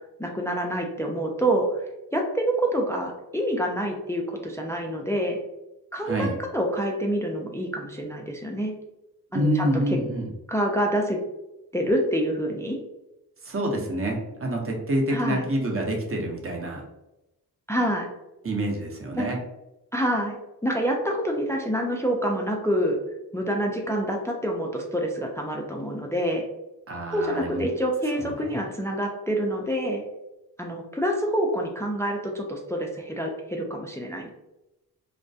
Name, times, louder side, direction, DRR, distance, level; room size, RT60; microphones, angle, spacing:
voice 1, 0.2-5.4 5.9-8.7 9.3-10.0 10.5-11.2 11.7-12.8 15.1-15.4 17.7-18.1 19.1-19.3 19.9-20.4 20.6-23.0 23.3-26.4 27.1-30.0 30.6-34.3, equal, 10° left, 1 dB, 0.3 m, -27 dB
voice 2, 6.0-6.3 9.3-10.3 13.4-16.8 18.4-19.4 26.9-27.7 28.2-28.5, right 1 dB, 30° right, 1 dB, 0.7 m, -27 dB
2.2 x 2.1 x 2.6 m, 0.95 s
cardioid pair, 50°, 42 cm